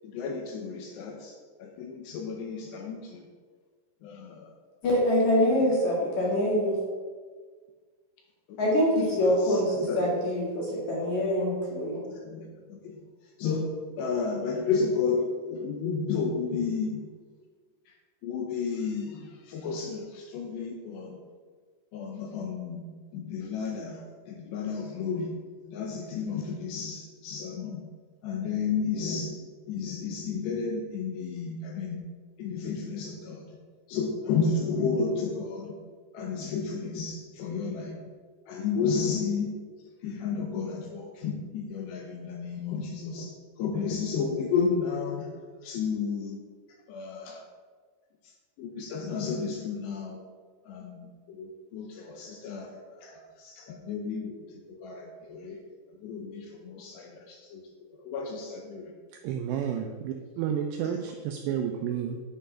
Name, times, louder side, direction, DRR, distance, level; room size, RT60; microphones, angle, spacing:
voice 1, 0.0-3.3 4.0-4.5 8.5-8.6 9.2-10.0 12.1-13.0 13.4-17.0 17.9-18.0 18.2-21.2 21.9-25.3 25.7-27.8 28.2-32.1 32.4-33.6 33.9-35.8 36.1-38.0 38.5-39.5 40.0-45.3 45.6-46.4 46.7-47.5 48.2-48.3 48.6-50.2 50.7-55.6 55.9-57.6 57.9-58.9 60.8-61.0, left 5 dB, 75° left, 2 dB, 2.7 m, -32 dB
voice 2, 4.8-6.8 8.6-12.0, equal, 50° left, -4 dB, 2.6 m, -25 dB
voice 3, 59.2-62.2, right 8 dB, 90° right, 4 dB, 2.4 m, -31 dB
10.0 x 5.3 x 5.7 m, 1.5 s
omnidirectional pair, 5.5 m